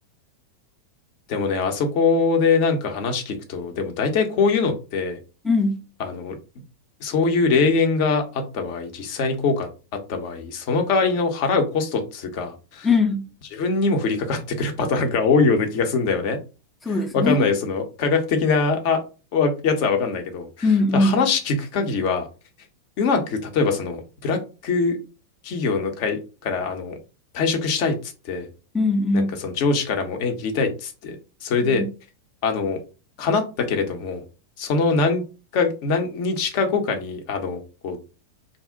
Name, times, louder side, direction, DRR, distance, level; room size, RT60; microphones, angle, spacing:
voice 1, 1.3-5.2 6.0-6.4 7.0-12.9 13.5-16.4 16.9-19.0 19.3-22.3 23.0-25.0 25.4-27.0 27.3-28.0 28.2-28.5 29.1-31.8 32.4-32.8 33.2-34.2 34.6-35.2 35.5-38.0, left 4 dB, 45° left, 0.7 m, -23 dB
voice 2, 5.4-5.8 12.8-13.3 16.8-17.5 20.6-21.2 28.7-29.4 31.6-31.9, left 3 dB, 10° left, 0.4 m, -21 dB
2.5 x 2.0 x 3.7 m
figure-of-eight pair, 90°, 0 cm